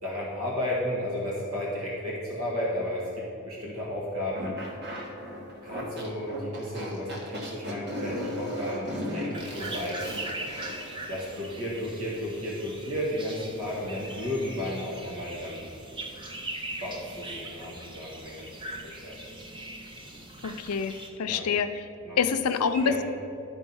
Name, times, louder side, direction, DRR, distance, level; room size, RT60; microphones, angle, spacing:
voice 1, 0.0-4.6 5.6-10.2 11.1-15.7 16.7-19.2 21.2-21.5 22.0-22.2 22.7-23.0, left 1 dB, 75° right, -5 dB, 1.8 m, -33 dB
sound 1, 4.3-10.9, equal, 50° right, 1.4 m, -36 dB
sound 2, 9.3-21.1, right 1 dB, 20° right, 0.7 m, -41 dB
voice 2, 20.4-20.9 21.2-21.8 22.2-23.0, left 6 dB, 90° left, 10 dB, 0.5 m, -26 dB
11.5 x 4.5 x 5.5 m, 2.8 s
head